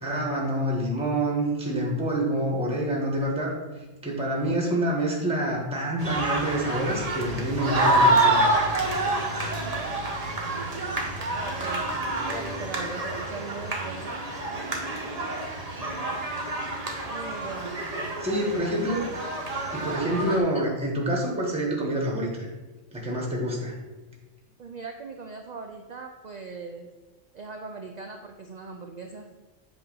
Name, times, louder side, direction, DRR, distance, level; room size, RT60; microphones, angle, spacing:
voice 1, 0.0-3.5 4.0-8.4 18.2-19.0 19.7-22.5 22.9-23.7, right 1 dB, 5° right, -2 dB, 1.1 m, -27 dB
sound 1, 6.0-20.4, right 1 dB, 35° right, 0.9 m, -27 dB
voice 2, 11.3-11.9 12.3-14.2 17.1-17.8 18.2-18.8 20.1-20.4 24.6-26.9 27.3-29.3, right 4 dB, 75° right, 4 dB, 0.4 m, -39 dB
7.9 x 2.7 x 5.4 m, 1.2 s
omnidirectional pair, 1.3 m